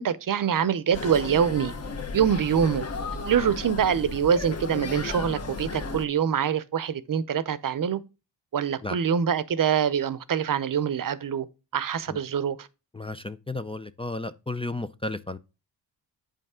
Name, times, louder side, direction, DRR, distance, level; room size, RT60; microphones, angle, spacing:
voice 1, 0.0-1.7 2.1-2.8 3.3-8.0 8.5-11.5 11.7-12.7, right 8 dB, 50° right, 0.7 m, -25 dB
sound 1, 0.9-6.1, left 3 dB, 35° left, 1.2 m, -34 dB
voice 2, 12.9-15.4, left 2 dB, 15° left, 0.4 m, -33 dB
8.7 x 5.5 x 3.6 m
wide cardioid pair, 115°, 44 cm